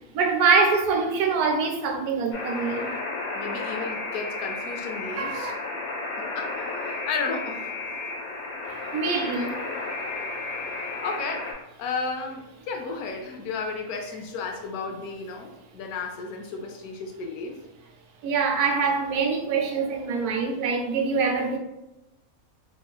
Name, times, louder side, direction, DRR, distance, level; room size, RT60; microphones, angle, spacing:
voice 1, 0.1-2.9 5.2-5.5 8.9-9.6 18.2-21.6, right 4 dB, 85° right, 1.1 m, -24 dB
Alarm, 2.3-11.5, left 3 dB, 45° left, 0.6 m, -33 dB
voice 2, 3.3-5.5 6.2-7.7 10.7-17.6, left 4 dB, 80° left, 1.1 m, -33 dB
3.1 x 3.0 x 2.3 m
omnidirectional pair, 1.5 m